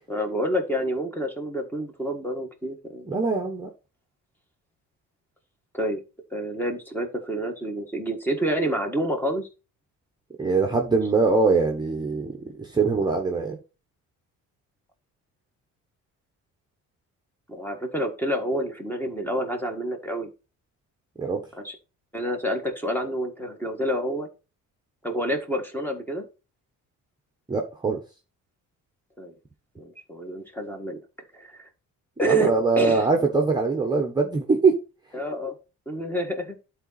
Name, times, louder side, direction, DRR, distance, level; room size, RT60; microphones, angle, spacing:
voice 1, 0.1-3.1 5.7-6.0 6.3-9.5 17.5-20.3 21.6-21.7 22.1-24.3 25.0-26.2 29.2-29.3 29.8-31.0 31.3-31.7 32.2-33.1 35.1-35.5 35.8-36.6, right 1 dB, 5° left, 4 dB, 1.6 m, -28 dB
voice 2, 3.1-3.7 10.4-13.6 21.2-21.4 27.5-28.0 32.2-34.7, right 4 dB, 15° right, 1 dB, 1.1 m, -22 dB
11.5 x 4.2 x 4.1 m, 0.31 s
cardioid pair, 145°, 32 cm